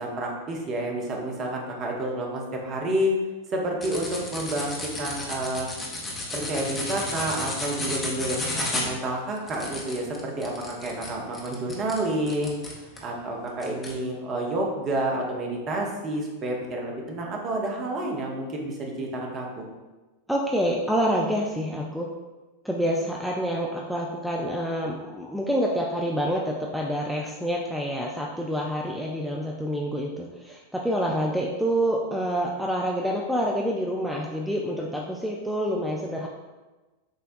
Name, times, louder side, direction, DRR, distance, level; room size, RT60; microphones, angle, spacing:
voice 1, 0.0-3.2 3.5-5.7 6.3-12.6 13.0-19.7, right 1 dB, 30° right, 0 dB, 0.8 m, -29 dB
sound 1, 3.8-13.1 13.6-14.0, left 2 dB, 20° left, 0.8 m, -33 dB
voice 2, 20.3-22.1 22.6-36.3, equal, ahead, -2 dB, 0.4 m, -27 dB
6.3 x 2.2 x 2.5 m, 1.2 s
figure-of-eight pair, 90°, 0 cm